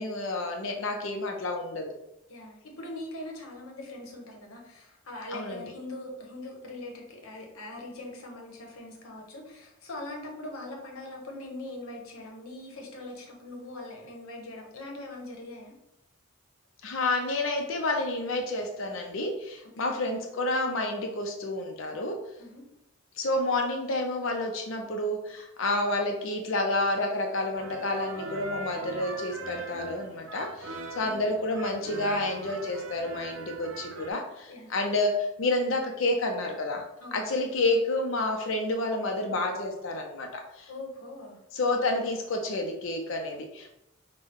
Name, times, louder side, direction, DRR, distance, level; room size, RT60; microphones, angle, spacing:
voice 1, 0.0-1.9 5.3-5.7 16.8-22.2 23.2-36.8 37.1-40.7 41.5-43.8, left 2 dB, 65° left, 3 dB, 0.5 m, -29 dB
voice 2, 2.3-15.7 19.8-19.9 22.4-22.6 31.0-31.2 34.5-34.7 37.0-37.3 40.7-41.4, left 1 dB, 85° left, 1 dB, 1.0 m, -41 dB
sound 1, 27.5-34.1, right 3 dB, 70° right, 0.6 m, -41 dB
5.3 x 2.2 x 3.5 m, 0.88 s
head